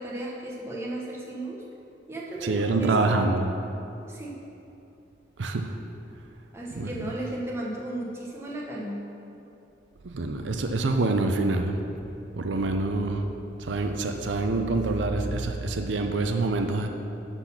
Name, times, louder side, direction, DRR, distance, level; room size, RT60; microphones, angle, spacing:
voice 1, 0.0-1.6 2.1-3.4 4.1-4.4 6.5-9.0, right 1 dB, 15° right, -4 dB, 1.1 m, -35 dB
voice 2, 2.4-3.5 5.4-5.7 6.8-6.9 10.0-11.8 12.3-13.2 13.6-16.9, right 3 dB, 80° right, 5 dB, 0.6 m, -26 dB
11.5 x 4.1 x 5.9 m, 2.9 s
head